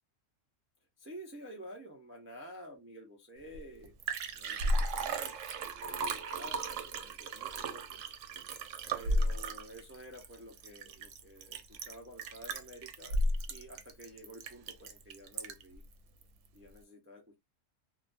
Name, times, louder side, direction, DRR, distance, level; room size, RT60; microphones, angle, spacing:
voice 1, 1.0-3.9 4.3-5.6 6.4-8.1 8.9-13.2 13.5-15.8 16.5-17.4, equal, 20° right, 0.3 m, -51 dB
Liquid, 3.5-3.6 3.8-15.8 16.2-16.3, right 1 dB, 75° right, 0.9 m, -35 dB
2.4 x 2.2 x 2.5 m
omnidirectional pair, 1.3 m